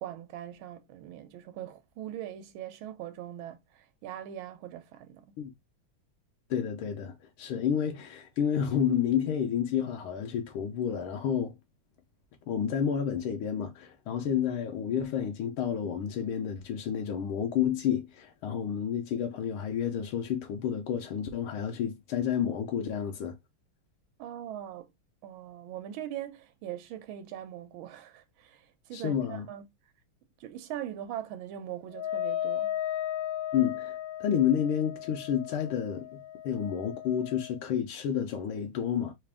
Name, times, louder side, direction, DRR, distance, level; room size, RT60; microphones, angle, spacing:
voice 1, 0.0-5.3 24.2-24.9 25.2-29.7 30.4-32.8, right 11 dB, 85° right, 1.4 m, -41 dB
voice 2, 6.5-11.5 12.5-23.4 28.9-29.5 33.5-39.1, left 8 dB, 90° left, 1.6 m, -30 dB
Wind instrument woodwind instrument, 31.9-37.6, left 11 dB, 55° left, 0.7 m, -35 dB
3.8 x 2.4 x 3.3 m
omnidirectional pair, 2.2 m